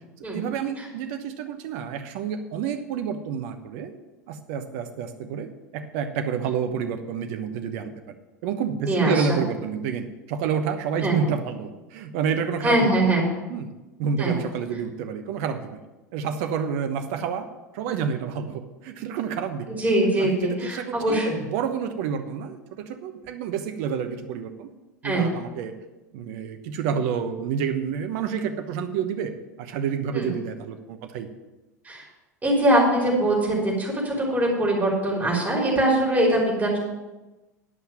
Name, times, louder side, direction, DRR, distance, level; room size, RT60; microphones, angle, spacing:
voice 1, 0.3-3.9 4.3-8.1 8.4-13.1 13.5-13.7 14.0-15.8 16.1-17.5 17.7-19.8 20.2-24.7 25.0-25.7 26.1-29.3 29.6-31.3, right 7 dB, 55° right, 8 dB, 1.1 m, -29 dB
voice 2, 8.8-9.4 11.0-11.2 12.6-13.3 14.2-14.4 19.7-21.4 25.0-25.3 30.1-30.3 31.8-32.0 32.4-36.8, right 1 dB, 15° right, -3 dB, 3.8 m, -22 dB
11.0 x 5.7 x 7.5 m, 1.1 s
figure-of-eight pair, 80°, 9 cm